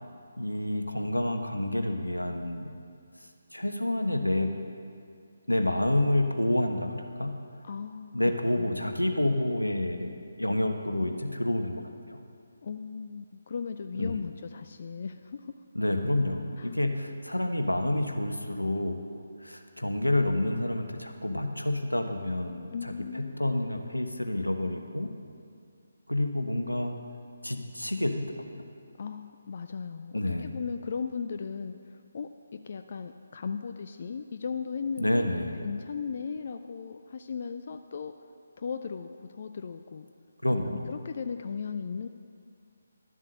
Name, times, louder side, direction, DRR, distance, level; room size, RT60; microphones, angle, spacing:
voice 1, 0.4-2.7 3.5-4.5 5.5-7.4 8.1-10.1 10.4-11.8 12.1-12.2 13.9-14.1 15.7-19.0 19.4-25.1 26.1-26.9 27.4-28.2 28.5-28.6 30.1-30.5 35.0-35.5 40.4-40.8, left 1 dB, 85° left, 6 dB, 1.1 m, -28 dB
voice 2, 7.6-8.9 12.6-15.5 16.6-16.8 22.7-23.4 29.0-35.3 35.6-38.1 38.6-40.1 40.7-42.1, left 5 dB, 45° left, 8 dB, 0.4 m, -37 dB
12.0 x 7.5 x 6.5 m, 2.3 s
figure-of-eight pair, 145°, 0 cm